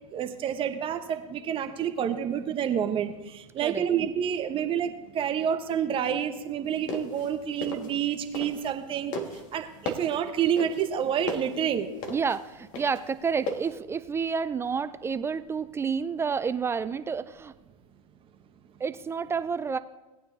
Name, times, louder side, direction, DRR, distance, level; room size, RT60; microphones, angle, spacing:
voice 1, 0.1-9.1 9.5-11.9, right 8 dB, 30° right, 7 dB, 0.9 m, -28 dB
sound 1, 6.7-8.8 9.1-13.7, left 2 dB, 45° left, 1.7 m, -36 dB
voice 2, 12.1-17.5 18.8-19.8, right 6 dB, 15° right, 13 dB, 0.3 m, -29 dB
17.5 x 9.3 x 2.7 m, 1.1 s
hypercardioid pair, 110°, 19 cm